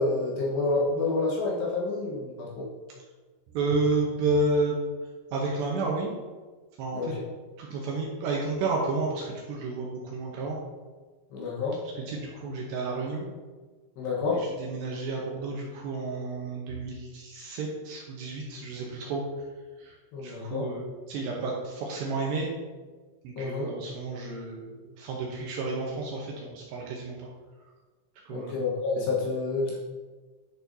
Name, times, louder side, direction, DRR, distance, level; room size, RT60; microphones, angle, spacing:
voice 1, 0.0-2.7 6.9-7.2 11.3-11.8 14.0-14.4 20.1-20.7 23.4-23.7 28.3-29.8, left 3 dB, 70° left, -4 dB, 3.0 m, -28 dB
voice 2, 3.5-4.7 5.3-6.1 6.8-7.1 7.6-10.6 12.1-13.3 14.3-19.2 19.8-19.9 20.2-20.8 21.1-22.5 23.2-27.3 28.3-28.5, right 3 dB, 75° right, -2 dB, 2.7 m, -31 dB
10.5 x 6.9 x 2.7 m, 1.4 s
omnidirectional pair, 5.8 m